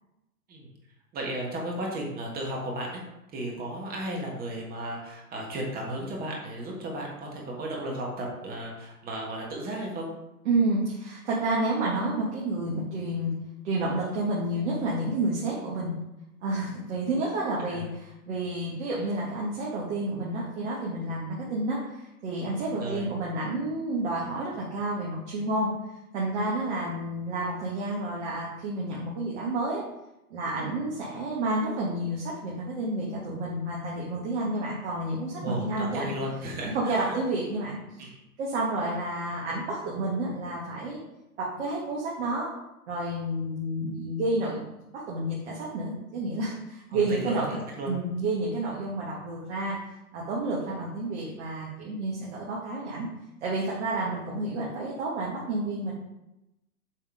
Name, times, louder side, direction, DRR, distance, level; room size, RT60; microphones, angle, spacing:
voice 1, 1.1-3.0 3.3-10.1 17.7-17.9 22.8-23.1 35.4-37.2 38.0-38.2 46.9-47.9, right 1 dB, 20° right, -1 dB, 1.5 m, -34 dB
voice 2, 10.4-13.3 13.6-15.9 16.4-25.7 26.1-29.8 30.3-36.1 36.7-38.1 38.4-41.0 41.4-42.5 42.9-47.6 47.9-53.1 53.4-55.9, right 2 dB, 45° right, -4 dB, 1.6 m, -30 dB
7.4 x 3.6 x 4.8 m, 0.92 s
figure-of-eight pair, 115°, 45 cm